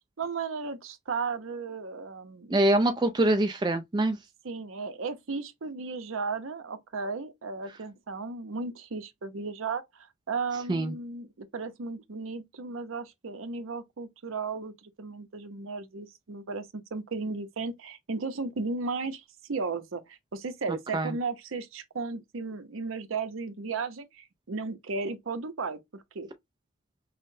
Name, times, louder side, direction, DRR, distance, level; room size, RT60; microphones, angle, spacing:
voice 1, 0.2-2.6 4.4-26.3, right 4 dB, 65° right, 0.6 m, -35 dB
voice 2, 2.5-4.2 10.7-10.9 20.9-21.1, right 1 dB, 20° right, 0.3 m, -24 dB
5.6 x 2.1 x 2.6 m
head